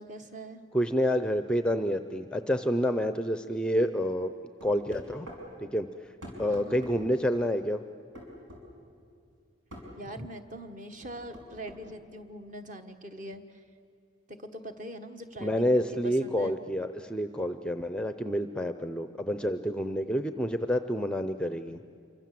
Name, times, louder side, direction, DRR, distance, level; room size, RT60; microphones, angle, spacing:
voice 1, 0.0-0.6 6.5-6.9 10.0-13.6 14.3-16.5, right 1 dB, 40° right, 6 dB, 1.4 m, -43 dB
voice 2, 0.7-4.3 4.6-5.3 5.6-5.9 6.4-7.8 15.4-21.8, equal, 5° left, 9 dB, 0.5 m, -28 dB
sound 1, 4.6-5.4 6.2-7.0 8.2-8.6 9.7-9.9 11.0-11.8, equal, 80° right, 6.2 m, -45 dB
27.5 x 24.5 x 7.6 m, 2.4 s
head